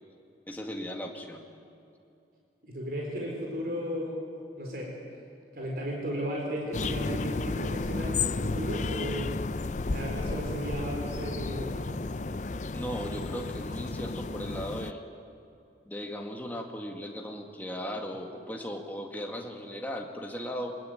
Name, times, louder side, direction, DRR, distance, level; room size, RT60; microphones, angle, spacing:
voice 1, 0.5-1.5 12.7-15.0 15.9-20.8, equal, 10° left, 2 dB, 2.0 m, -37 dB
voice 2, 2.6-4.2 4.6-4.9 5.5-9.4 9.9-12.0, equal, 55° right, -2 dB, 4.4 m, -35 dB
sound 1, 6.7-14.9, left 3 dB, 40° left, 0.5 m, -32 dB
23.5 x 21.0 x 9.1 m, 2.7 s
head